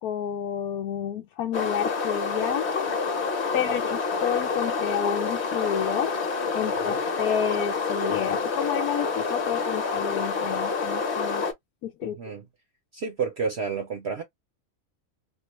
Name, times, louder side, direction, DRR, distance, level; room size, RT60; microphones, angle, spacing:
voice 1, 0.0-2.9 3.5-6.2 6.5-11.4 11.8-12.2, left 9 dB, 80° left, 1.1 m, -30 dB
sound 1, 1.5-11.5, left 4 dB, 45° left, 1.2 m, -28 dB
voice 2, 12.0-12.5 12.9-14.2, right 5 dB, 55° right, 0.8 m, -30 dB
3.8 x 2.2 x 3.0 m
omnidirectional pair, 1.6 m